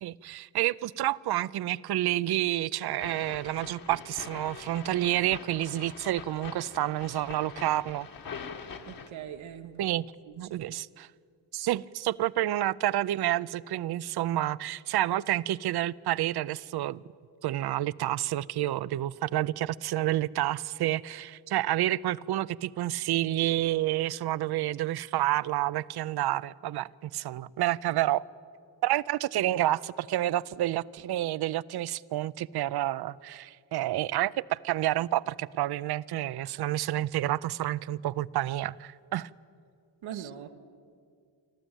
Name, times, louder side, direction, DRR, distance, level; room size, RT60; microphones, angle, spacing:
voice 1, 0.0-8.1 9.8-10.1 10.4-11.1 11.5-17.0 17.4-28.2 28.8-39.3 40.2-40.3, right 14 dB, 55° right, 0.5 m, -29 dB
sound 1, 3.0-9.1, left 6 dB, 45° left, 1.5 m, -44 dB
voice 2, 8.9-9.8 10.3-10.6 40.0-40.5, right 9 dB, 90° right, 1.3 m, -41 dB
25.5 x 13.5 x 9.0 m
cardioid pair, 130°, 46 cm